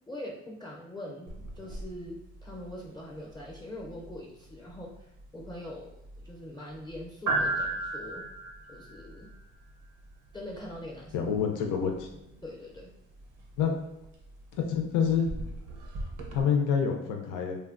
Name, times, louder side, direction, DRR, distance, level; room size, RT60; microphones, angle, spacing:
voice 1, 0.1-5.9 6.2-8.2 8.7-9.3 10.3-11.3 12.4-12.9, left 1 dB, 15° left, -3 dB, 0.5 m, -43 dB
sound 1, 1.3-16.4, right 2 dB, 75° right, 0.6 m, -39 dB
voice 2, 11.1-12.1 13.6-13.7 14.5-15.3 16.3-17.6, left 7 dB, 90° left, 2 dB, 0.5 m, -27 dB
3.1 x 2.2 x 2.4 m, 0.89 s
cardioid pair, 90°, 30 cm